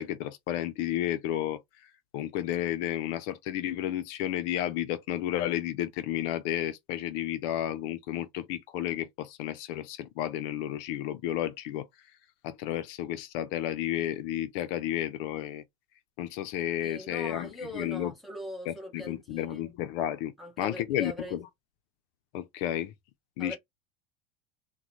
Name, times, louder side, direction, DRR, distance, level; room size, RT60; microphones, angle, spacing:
voice 1, 0.0-11.9 12.4-15.6 16.2-17.5 17.7-18.1 18.7-20.3 20.6-21.5 22.3-22.9 23.4-23.6, left 12 dB, 65° left, 0.6 m, -32 dB
voice 2, 16.8-19.6 20.4-21.4 23.4-23.6, equal, ahead, 1.1 m, -41 dB
3.7 x 2.2 x 3.0 m
supercardioid pair, 130°, 33 cm